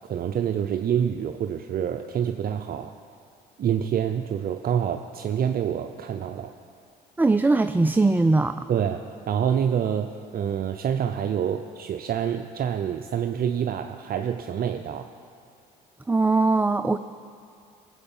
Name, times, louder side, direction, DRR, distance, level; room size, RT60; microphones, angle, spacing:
voice 1, 0.1-2.9 3.6-6.5 8.7-15.1, right 8 dB, 50° right, 6 dB, 0.6 m, -27 dB
voice 2, 7.2-8.7 16.1-17.0, right 3 dB, 10° right, 10 dB, 0.4 m, -20 dB
17.5 x 8.0 x 5.5 m, 2.3 s
supercardioid pair, 70°, 20 cm